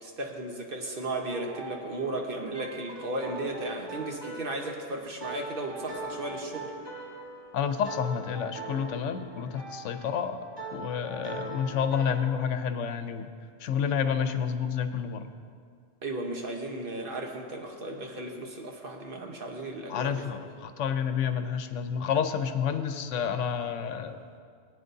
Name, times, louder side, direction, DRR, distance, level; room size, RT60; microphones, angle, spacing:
voice 1, 0.0-6.7 16.0-20.2, right 2 dB, 50° right, 2 dB, 1.2 m, -35 dB
sound 1, 1.0-12.3, right 2 dB, 20° right, 1.6 m, -42 dB
voice 2, 7.5-10.4 10.7-13.3 13.6-15.2 19.9-24.2, left 7 dB, 90° left, 9 dB, 1.0 m, -29 dB
18.0 x 9.0 x 2.7 m, 2.2 s
omnidirectional pair, 1.2 m